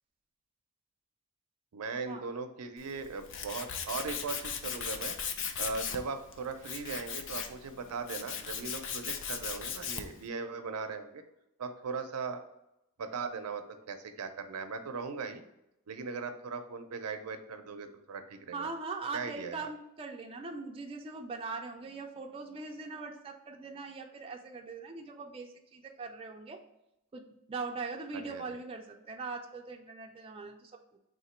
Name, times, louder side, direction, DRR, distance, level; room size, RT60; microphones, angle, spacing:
voice 1, 1.7-5.2 5.6-11.2 11.6-12.4 13.0-15.4 15.9-18.7 19.1-19.7 28.1-28.4, right 4 dB, 80° right, 8 dB, 0.5 m, -39 dB
Tools, 2.8-10.2, left 7 dB, 55° left, 0.4 m, -38 dB
voice 2, 18.5-26.6 27.1-31.0, right 4 dB, 25° right, 2 dB, 0.4 m, -41 dB
3.7 x 2.8 x 4.3 m, 0.86 s
head